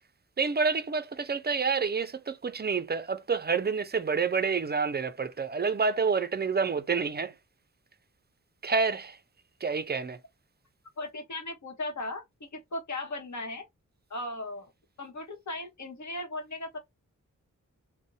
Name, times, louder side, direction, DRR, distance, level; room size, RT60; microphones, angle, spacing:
voice 1, 0.4-7.3 8.6-9.2 9.6-10.2, right 5 dB, 30° right, 0.4 m, -28 dB
voice 2, 11.0-13.6 14.1-14.7 15.0-16.8, left 2 dB, 60° left, 1.0 m, -37 dB
2.5 x 2.1 x 2.7 m
cardioid pair, 55°, 33 cm